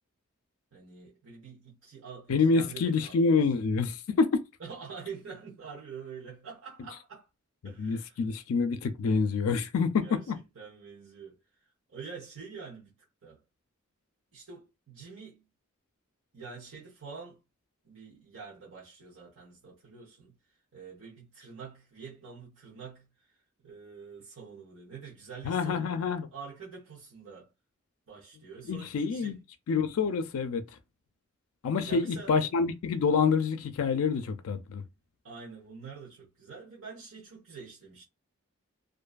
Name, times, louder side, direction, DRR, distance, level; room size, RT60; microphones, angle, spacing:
voice 1, 0.7-3.5 4.6-7.3 7.6-8.2 10.0-12.9 13.2-13.4 14.3-15.5 16.3-17.4 17.8-26.0 26.3-27.5 28.1-29.4 31.8-32.3 35.2-38.0, right 5 dB, 65° right, 0.9 m, -46 dB
voice 2, 2.3-4.4 7.8-10.4 25.4-26.3 28.7-29.4 29.7-30.6 31.6-34.8, left 5 dB, 80° left, 0.4 m, -27 dB
2.5 x 2.2 x 2.4 m
head